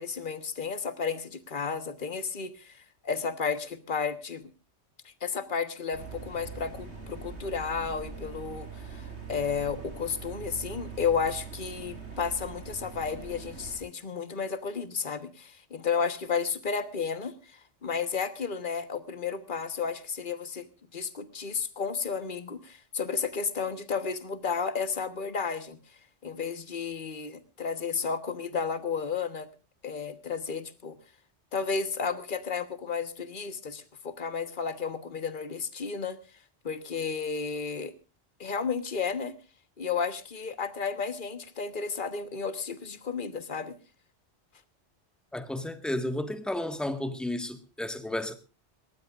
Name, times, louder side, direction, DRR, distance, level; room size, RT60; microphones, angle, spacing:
voice 1, 0.0-4.5 5.2-20.7 20.9-25.8 26.2-29.5 29.8-31.0 31.5-36.2 36.6-37.9 38.4-39.3 39.8-43.7, left 5 dB, 50° left, 1.5 m, -32 dB
sound 1, 5.9-13.8, right 5 dB, 85° right, 4.6 m, -42 dB
voice 2, 45.3-48.3, left 1 dB, ahead, 1.6 m, -32 dB
23.0 x 18.5 x 2.5 m
omnidirectional pair, 1.1 m